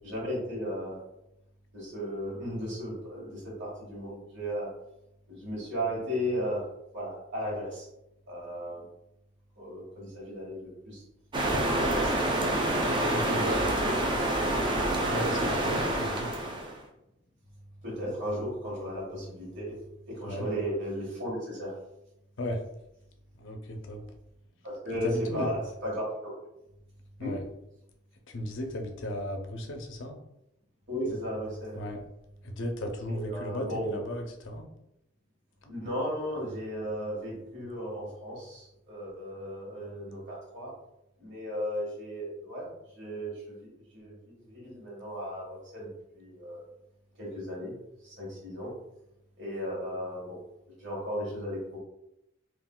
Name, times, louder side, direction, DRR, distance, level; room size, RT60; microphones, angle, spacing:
voice 1, 0.0-1.0 1.7-4.7 5.3-6.6 6.9-7.9 8.3-8.8 9.6-11.0 11.5-12.1 12.4-12.9 13.2-14.2 17.8-19.8 20.1-21.7 24.6-26.3 27.2-27.3 30.9-31.8 33.1-33.9 35.7-40.7 41.2-45.9 46.1-46.7 47.2-47.7 48.0-48.7 49.4-50.4 50.8-51.8, equal, 60° right, -5 dB, 1.4 m, -35 dB
sound 1, 11.3-16.8, right 1 dB, 25° right, 0.4 m, -27 dB
voice 2, 13.0-13.7 15.1-16.4 20.3-20.5 22.4-22.6 23.4-24.0 25.0-25.5 27.2-27.4 28.3-30.2 31.7-32.0 32.4-34.7 35.6-35.9, left 1 dB, 65° left, 3 dB, 0.5 m, -35 dB
3.7 x 2.5 x 2.2 m, 0.85 s
head